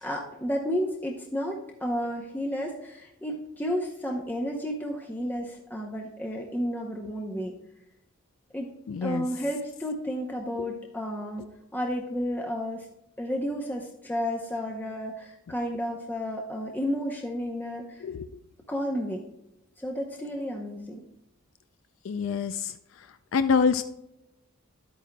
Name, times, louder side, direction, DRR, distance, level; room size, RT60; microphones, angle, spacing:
voice 1, 0.0-7.5 8.5-8.7 9.0-12.9 13.2-18.0 18.7-19.2 19.8-21.0, equal, 10° left, 0 dB, 0.7 m, -32 dB
voice 2, 8.9-9.3 18.0-18.3 22.0-22.7 23.3-23.8, left 5 dB, 65° left, 11 dB, 0.4 m, -25 dB
11.0 x 8.5 x 2.2 m, 0.86 s
head